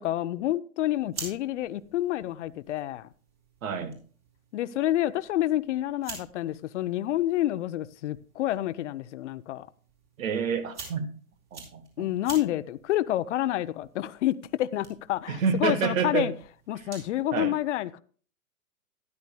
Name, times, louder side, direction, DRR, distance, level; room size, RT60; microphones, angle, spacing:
voice 1, 0.0-3.1 4.5-9.7 12.0-16.3 16.7-18.0, left 14 dB, 55° left, 0.6 m, -28 dB
sound 1, 0.8-17.2, right 4 dB, 30° right, 3.7 m, -48 dB
voice 2, 3.6-4.0 10.2-11.1 11.5-12.1 15.3-16.3 17.3-17.5, right 6 dB, 65° right, 1.5 m, -28 dB
13.0 x 10.5 x 2.2 m
hypercardioid pair, 130°, 43 cm